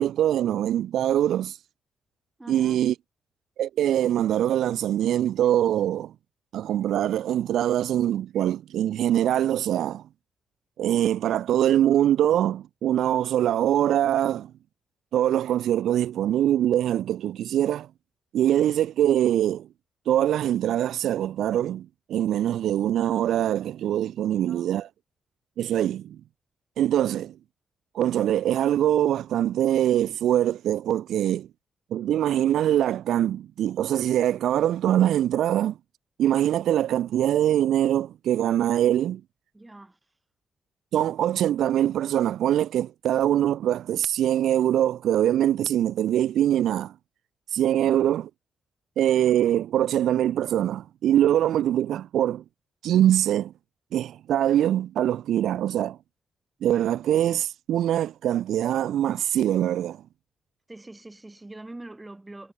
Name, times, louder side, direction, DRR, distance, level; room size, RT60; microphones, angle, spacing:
voice 1, 0.0-1.6 2.5-2.9 3.6-6.1 6.5-10.0 10.8-14.5 15.1-17.9 18.3-19.7 20.1-24.9 25.6-26.2 26.8-27.3 27.9-31.5 31.9-35.8 36.2-39.2 40.9-46.9 47.5-48.3 49.0-52.4 52.8-53.5 53.9-56.0 56.6-60.0, right 11 dB, 85° right, 0.6 m, -23 dB
voice 2, 2.4-2.8 24.0-24.7 39.5-40.0 47.7-48.0 60.7-62.5, right 2 dB, 10° right, 7.0 m, -44 dB
wide cardioid pair, 145°, 0 cm